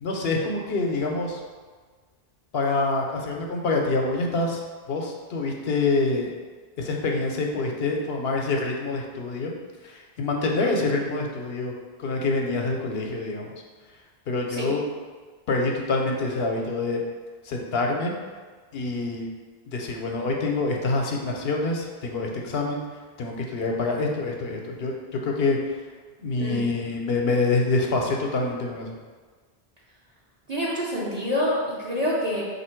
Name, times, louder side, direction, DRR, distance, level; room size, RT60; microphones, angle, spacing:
voice 1, 0.0-1.4 2.5-4.6 4.9-6.3 6.8-9.5 9.8-11.7 12.0-13.5 14.3-14.8 15.5-17.0 17.4-18.1 18.7-19.3 19.7-22.8 23.2-24.9 25.2-25.8 26.2-29.0, left 3 dB, 75° left, 1 dB, 0.9 m, -26 dB
voice 2, 30.5-31.6 31.8-32.4, equal, 45° right, -7 dB, 0.8 m, -26 dB
4.0 x 2.8 x 4.4 m, 1.5 s
omnidirectional pair, 1.0 m